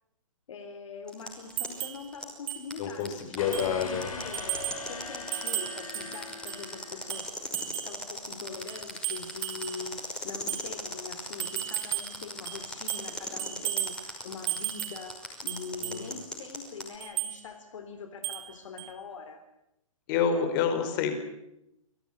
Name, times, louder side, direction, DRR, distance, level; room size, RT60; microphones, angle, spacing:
voice 1, 0.5-19.4, left 5 dB, 60° left, 8 dB, 3.5 m, -43 dB
sound 1, 1.1-16.9, left 1 dB, 5° left, 5.7 m, -38 dB
sound 2, 1.6-2.0 2.5-2.6 3.0-3.1 3.5-3.8 4.3-4.8 5.3-6.6 7.1-8.0 8.7-9.8 10.5-10.7 11.4-12.2 12.5-13.1 13.4-14.0 14.5-15.0 15.5-16.0 17.0-17.4 18.2-18.5 18.8-18.9, right 16 dB, 25° right, 2.6 m, -34 dB
voice 2, 2.8-4.1 15.8-16.2 20.1-21.2, left 7 dB, 35° left, 9 dB, 4.7 m, -28 dB
sound 3, 3.4-7.6, left 3 dB, 85° left, 6.6 m, -41 dB
26.5 x 19.0 x 9.8 m, 0.84 s
hypercardioid pair, 140°, 18 cm